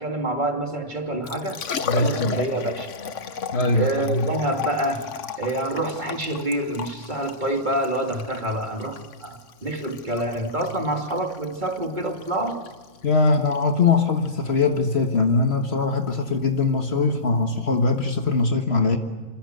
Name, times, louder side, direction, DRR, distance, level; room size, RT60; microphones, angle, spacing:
voice 1, 0.0-1.6 1.9-2.9 3.7-5.1 5.4-12.6, right 1 dB, 40° right, 3 dB, 2.9 m, -27 dB
Liquid, 1.1-18.4, left 7 dB, 80° left, 1.4 m, -36 dB
voice 2, 1.8-2.4 3.5-4.3 13.0-19.0, left 3 dB, 60° left, 5 dB, 1.8 m, -21 dB
27.5 x 26.0 x 8.0 m, 1.4 s
omnidirectional pair, 1.3 m